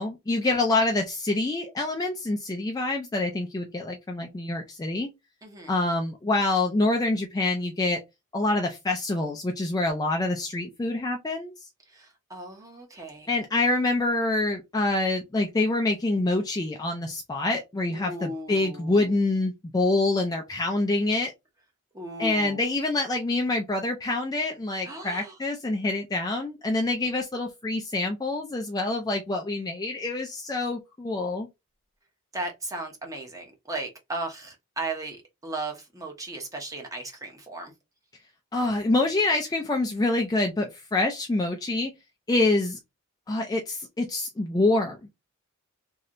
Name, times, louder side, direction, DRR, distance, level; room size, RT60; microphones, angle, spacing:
voice 1, 0.0-5.1 5.7-8.0 8.3-11.5 13.3-21.3 22.2-31.5 38.5-41.9 42.3-42.8 43.3-45.1, left 2 dB, 15° left, 0.3 m, -26 dB
voice 2, 5.4-5.7 11.9-13.3 17.9-19.1 21.9-22.6 24.8-25.4 32.3-37.7, right 2 dB, 15° right, 0.7 m, -36 dB
3.1 x 2.7 x 2.5 m
head